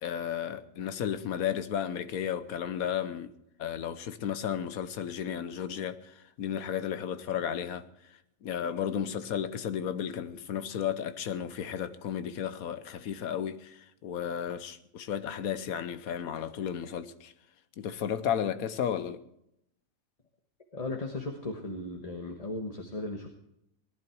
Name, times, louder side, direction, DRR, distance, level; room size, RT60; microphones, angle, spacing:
voice 1, 0.0-3.3 3.6-7.8 8.4-17.3 17.8-19.2, left 9 dB, 85° left, 1.4 m, -33 dB
voice 2, 20.7-23.3, left 2 dB, 25° left, 1.4 m, -36 dB
18.5 x 11.5 x 4.6 m
omnidirectional pair, 1.5 m